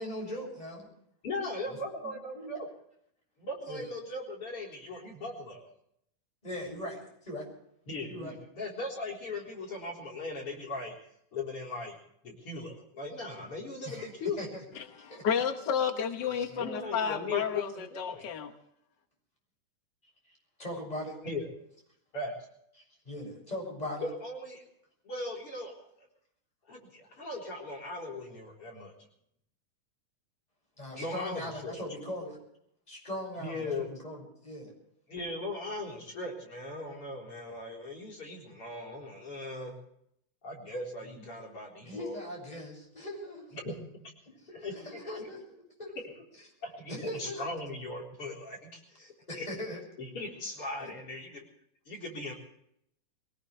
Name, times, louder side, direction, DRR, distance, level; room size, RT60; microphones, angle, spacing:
voice 1, 0.0-0.8 1.7-1.8 2.3-2.6 3.7-3.8 6.4-7.5 8.1-8.4 13.9-14.1 14.4-14.5 15.0-15.3 16.3-16.7 20.6-21.2 23.1-24.1 30.8-32.4 32.9-34.7 41.1-41.2 41.8-43.6 44.4-45.4 45.8-45.9 46.9-47.4 49.3-49.8 50.8-51.0, left 1 dB, 10° left, 0 dB, 6.9 m, -40 dB
voice 2, 1.2-2.7 3.4-5.7 7.9-10.9 11.3-12.0 12.2-14.5 16.6-18.2 21.2-21.5 22.1-22.3 24.0-24.6 25.0-25.7 26.0-26.1 26.7-28.9 30.9-31.8 33.4-33.9 35.1-39.8 40.4-42.2 43.5-44.0 44.5-45.3 46.0-46.1 46.6-49.5 50.0-51.4 51.9-52.3, left 2 dB, 45° left, -2 dB, 4.7 m, -38 dB
voice 3, 14.8-18.5, left 7 dB, 75° left, 6 dB, 1.0 m, -31 dB
23.0 x 18.5 x 3.3 m, 0.71 s
omnidirectional pair, 3.7 m